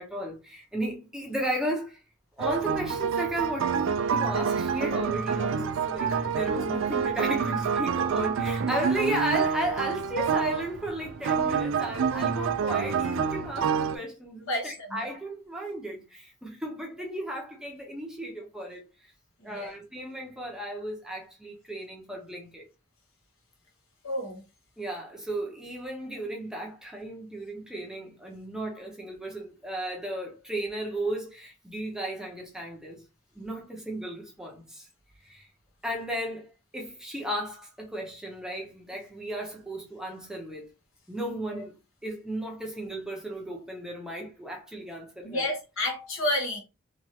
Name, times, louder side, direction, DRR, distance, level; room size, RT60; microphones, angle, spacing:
voice 1, 0.0-2.0 2.4-19.1 19.4-22.6 24.8-33.0 33.3-34.9 35.2-35.5 35.8-40.7 41.1-41.8 42.0-45.4, right 1 dB, 5° right, 0.6 m, -35 dB
sound 1, 2.4-14.0, right 6 dB, 65° right, 0.3 m, -27 dB
voice 2, 14.5-14.9 19.4-19.7 24.0-24.4 45.2-46.6, left 1 dB, 75° left, 1.0 m, -30 dB
3.0 x 2.4 x 2.7 m
head